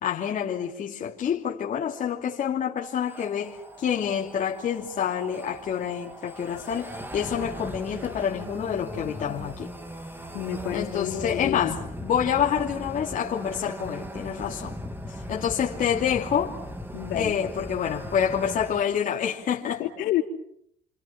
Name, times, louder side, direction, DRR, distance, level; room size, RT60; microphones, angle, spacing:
voice 1, 0.0-9.7 10.7-14.7 15.1-16.6 17.1-19.8, left 8 dB, 50° left, 2.9 m, -27 dB
sound 1, 3.0-18.8, equal, 10° right, 2.7 m, -39 dB
voice 2, 10.3-11.8 16.9-17.4 19.6-20.2, left 13 dB, 85° left, 3.8 m, -29 dB
29.0 x 27.5 x 5.9 m
cardioid pair, 110°, 17 cm